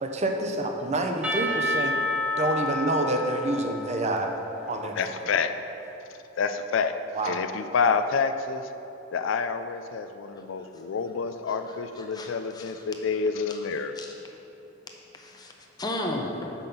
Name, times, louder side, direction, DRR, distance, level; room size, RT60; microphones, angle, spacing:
voice 1, 0.0-2.0 2.4-4.3 4.7-5.2 7.1-7.4, right 2 dB, 35° right, 3 dB, 0.6 m, -27 dB
Percussion / Church bell, 1.2-5.2, left 1 dB, 5° right, 1.0 m, -30 dB
voice 2, 5.0-5.5 6.4-7.0 7.2-8.7 9.1-13.9, left 5 dB, 80° left, 8 dB, 0.4 m, -28 dB
voice 3, 11.5-12.3 12.5-12.8 13.5-13.7 14.0-14.1 15.1-15.5 15.8-16.5, left 1 dB, 20° left, 1 dB, 0.8 m, -35 dB
5.8 x 5.4 x 6.8 m, 3.0 s
head